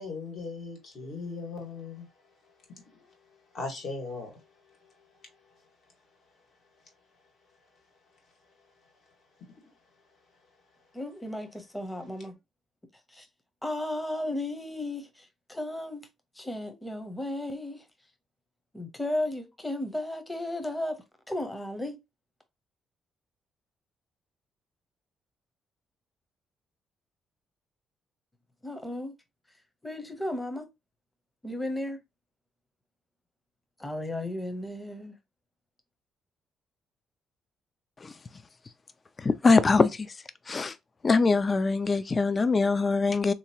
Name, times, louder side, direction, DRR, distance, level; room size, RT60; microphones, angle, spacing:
voice 1, 0.0-2.1 2.4-5.6, left 3 dB, 65° left, 1.8 m, -40 dB
voice 2, 10.9-12.3 13.1-13.3 13.6-16.1 16.3-17.8 18.7-21.0 21.3-22.0 28.6-29.1 29.8-30.7 31.4-32.0 33.8-35.1, left 1 dB, 10° left, 0.8 m, -34 dB
voice 3, 39.2-40.8 41.0-43.3, left 4 dB, 35° left, 0.3 m, -23 dB
3.5 x 2.9 x 2.8 m
cardioid pair, 90°, 0 cm